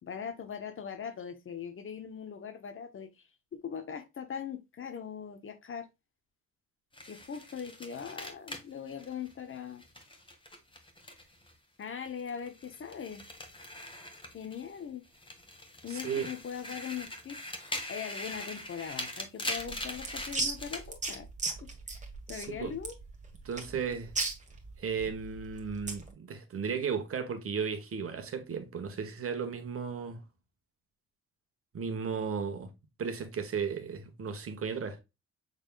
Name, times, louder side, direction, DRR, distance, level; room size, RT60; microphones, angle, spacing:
voice 1, 0.0-3.2 3.5-5.9 7.1-9.8 11.8-13.2 14.3-15.0 15.8-21.3 21.6-22.0 22.3-23.0, left 7 dB, 45° left, 1.0 m, -41 dB
sound 1, 6.9-11.5 11.8-14.8 15.1-20.9, left 1 dB, 15° left, 1.4 m, -42 dB
voice 2, 15.9-16.3 22.3-22.7 23.4-24.1 24.8-30.2 31.7-32.7 33.0-35.0, right 6 dB, 45° right, 1.3 m, -35 dB
sound 2, 19.6-26.1, right 3 dB, 25° right, 1.6 m, -37 dB
6.5 x 3.5 x 2.3 m
cardioid pair, 90°, 30 cm